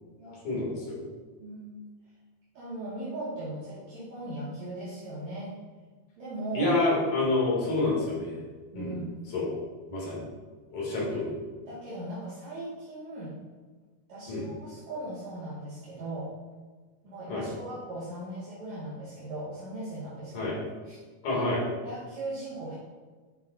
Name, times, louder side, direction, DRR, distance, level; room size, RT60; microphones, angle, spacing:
voice 1, 0.4-1.0 6.5-8.3 8.7-9.0 9.3-9.5 9.9-10.2 10.7-11.3 14.3-14.5 17.3-17.5 20.3-20.6 21.2-21.6, left 2 dB, 60° left, -5 dB, 4.1 m, -28 dB
voice 2, 1.4-1.8 2.5-5.5 6.2-6.8 8.7-9.2 11.7-13.3 14.1-16.3 17.0-20.5 20.8-21.0 21.3-21.4 21.8-22.7, right 1 dB, 55° right, -11 dB, 3.2 m, -38 dB
13.0 x 7.8 x 2.7 m, 1.4 s
omnidirectional pair, 4.0 m